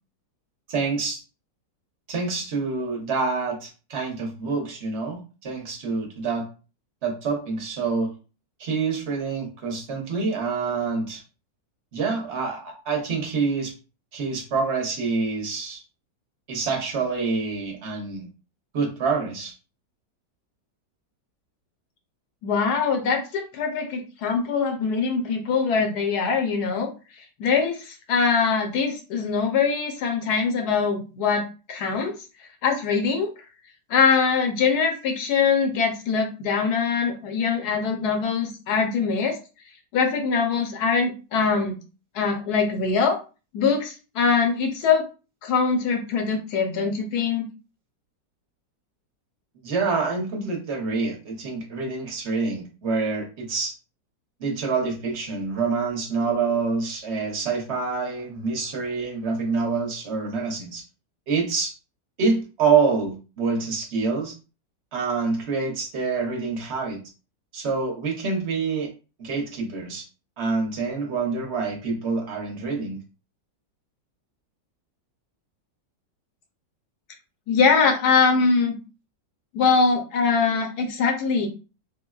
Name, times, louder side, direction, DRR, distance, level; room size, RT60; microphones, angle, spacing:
voice 1, 0.7-1.2 2.1-6.5 7.0-8.1 8.6-11.2 11.9-13.7 14.1-15.8 16.5-18.3 18.7-19.5 49.6-53.7 54.4-60.8 61.3-61.7 62.2-64.3 64.9-67.0 67.5-68.9 69.2-70.0 70.4-73.0, right 4 dB, 50° right, 1 dB, 0.9 m, -26 dB
voice 2, 22.4-26.9 27.4-31.4 31.7-32.1 32.6-33.3 33.9-39.4 39.9-41.8 42.1-43.2 43.5-45.0 45.4-47.5 77.5-78.8 79.5-81.5, left 5 dB, 70° left, 3 dB, 1.1 m, -22 dB
3.7 x 2.0 x 2.3 m, 0.33 s
omnidirectional pair, 1.9 m